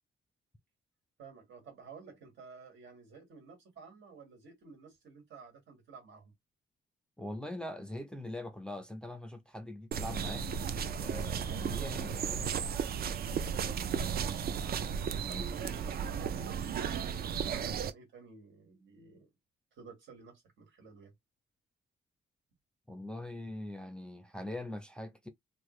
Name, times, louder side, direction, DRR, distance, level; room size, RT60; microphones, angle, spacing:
voice 1, 1.2-6.3 14.5-14.9 15.3-19.3 19.7-21.1, right 5 dB, 80° right, 1.7 m, -52 dB
voice 2, 7.2-10.5 11.0-12.5 15.3-15.4 22.9-25.3, left 1 dB, 5° left, 0.5 m, -42 dB
sound 1, 9.9-17.9, right 7 dB, 55° right, 0.4 m, -34 dB
3.3 x 2.1 x 3.1 m
cardioid pair, 125°, 19 cm